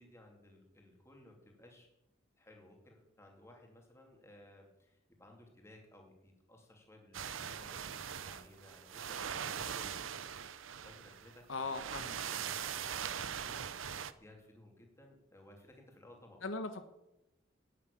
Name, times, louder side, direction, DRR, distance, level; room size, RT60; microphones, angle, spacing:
voice 1, 0.0-1.9 2.4-10.0 10.8-13.6 13.8-16.4, left 1 dB, 15° left, 1 dB, 2.9 m, -59 dB
sound 1, 7.1-14.1, right 8 dB, 85° right, 0.7 m, -41 dB
voice 2, 11.5-12.2 16.4-16.9, left 3 dB, 80° left, 9 dB, 1.2 m, -39 dB
10.0 x 9.6 x 8.5 m, 0.90 s
head